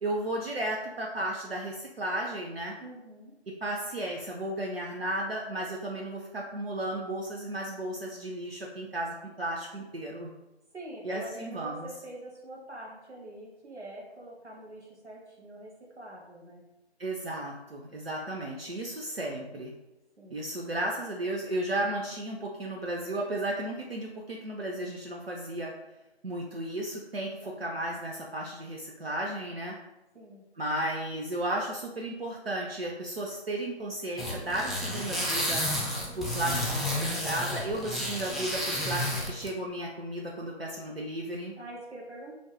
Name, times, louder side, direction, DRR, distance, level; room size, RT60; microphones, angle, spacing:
voice 1, 0.0-2.7 3.5-10.3 11.0-11.9 17.0-19.7 20.3-25.7 26.2-29.7 30.6-35.6 36.2-41.5, right 1 dB, 65° right, -2 dB, 0.5 m, -34 dB
voice 2, 2.8-3.3 10.7-16.6 20.2-20.4 27.4-27.8 30.1-30.4 41.6-42.3, right 1 dB, 85° right, -4 dB, 1.2 m, -45 dB
sound 1, 34.2-39.5, equal, ahead, 0.4 m, -31 dB
3.0 x 2.8 x 3.1 m, 0.98 s
figure-of-eight pair, 170°, 33 cm